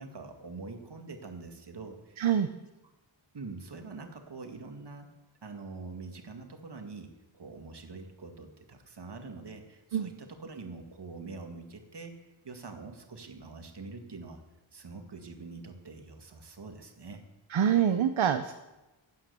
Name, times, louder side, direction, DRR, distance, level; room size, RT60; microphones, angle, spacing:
voice 1, 0.0-2.2 3.3-5.1 5.4-12.2 12.4-14.4 14.7-17.2, right 3 dB, 55° right, 4 dB, 2.0 m, -44 dB
voice 2, 2.2-2.5 9.9-10.1 17.5-18.5, right 9 dB, 70° right, 8 dB, 0.8 m, -25 dB
16.0 x 9.3 x 7.0 m, 1.1 s
wide cardioid pair, 120°, 49 cm